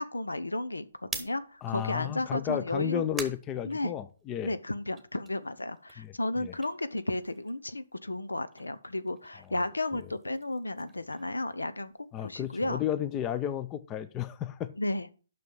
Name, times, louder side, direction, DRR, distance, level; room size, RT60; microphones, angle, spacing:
voice 1, 0.0-3.0 3.6-3.9 4.4-11.9 12.2-12.8 14.8-15.1, left 2 dB, 90° left, 13 dB, 0.8 m, -33 dB
sound 1, 0.9-4.4 4.8-7.8 8.1-12.2, right 5 dB, 5° right, 1.3 m, -46 dB
voice 2, 1.6-4.5 6.0-6.1 6.4-6.5 12.1-14.7, left 10 dB, 20° left, 14 dB, 0.6 m, -33 dB
9.4 x 6.1 x 5.5 m, 0.37 s
figure-of-eight pair, 135°, 0 cm